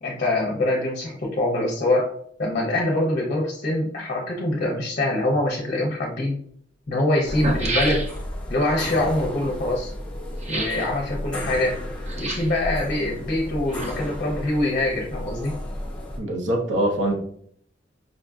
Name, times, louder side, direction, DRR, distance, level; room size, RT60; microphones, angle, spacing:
voice 1, 0.0-2.1 2.4-6.4 6.9-8.0 8.5-9.9 10.5-11.8 12.2-15.5, left 1 dB, 45° left, -1 dB, 0.6 m, -24 dB
sound 1, 5.9-6.0 6.9-7.0 7.2-8.4 10.4-10.9 12.1-12.6 13.4-14.2 14.5-14.6, right 1 dB, 35° right, 0.6 m, -29 dB
sound 2, 7.2-16.2, left 1 dB, 5° left, 0.8 m, -33 dB
voice 2, 16.2-17.2, right 1 dB, 70° right, 1 dB, 0.8 m, -23 dB
5.0 x 2.5 x 2.3 m, 0.64 s
head